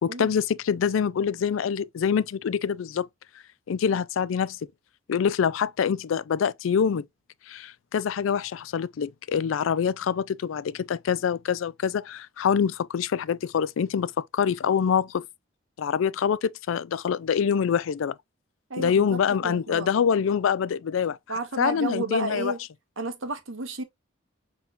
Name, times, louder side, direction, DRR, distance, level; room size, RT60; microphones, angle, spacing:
voice 1, 0.0-3.1 3.7-4.6 5.1-7.0 7.5-15.3 15.8-18.2 18.8-21.2 21.6-22.5, left 7 dB, 85° left, 0.4 m, -25 dB
voice 2, 18.7-19.9 21.3-22.6 23.0-23.8, right 3 dB, 90° right, 1.3 m, -32 dB
5.9 x 3.5 x 2.5 m
head